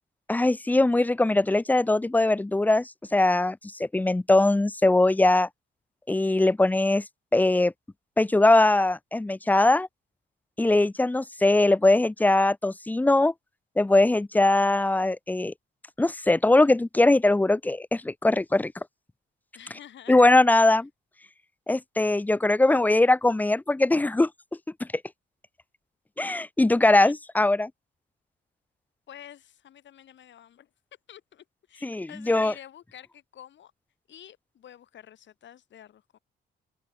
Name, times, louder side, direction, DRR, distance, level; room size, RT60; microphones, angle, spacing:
voice 1, 0.3-5.5 6.1-7.0 7.3-7.7 8.2-9.9 10.6-13.3 13.8-15.5 16.0-18.7 20.1-20.9 21.7-24.3 26.2-27.7 31.8-32.5, left 2 dB, 10° left, 0.5 m, -21 dB
voice 2, 19.5-20.2 20.7-20.8 27.0-27.1 29.1-30.7 31.1-33.7 34.1-36.2, left 10 dB, 65° left, 5.3 m, -49 dB
open air
cardioid pair, 90°, 20 cm